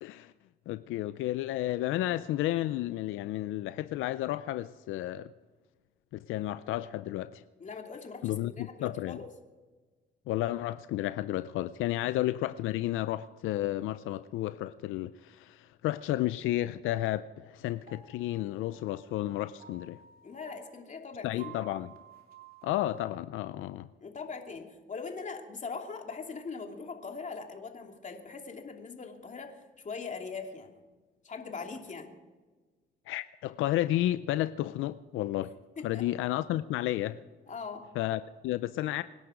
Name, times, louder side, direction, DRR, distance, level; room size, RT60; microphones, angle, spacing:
voice 1, 0.0-0.3 0.7-5.3 6.1-7.4 8.2-9.2 10.3-20.0 21.2-21.9 22.6-23.9 33.1-35.5 35.8-37.2 38.0-39.0, left 14 dB, 90° left, 0.5 m, -32 dB
voice 2, 7.6-9.3 12.0-12.1 20.2-21.5 24.0-30.7 31.2-32.1 35.8-36.0 37.5-37.8, left 4 dB, 40° left, 2.8 m, -41 dB
sound 1, 17.8-23.0, right 6 dB, 50° right, 3.0 m, -54 dB
25.5 x 10.5 x 5.1 m
cardioid pair, 90°, 20 cm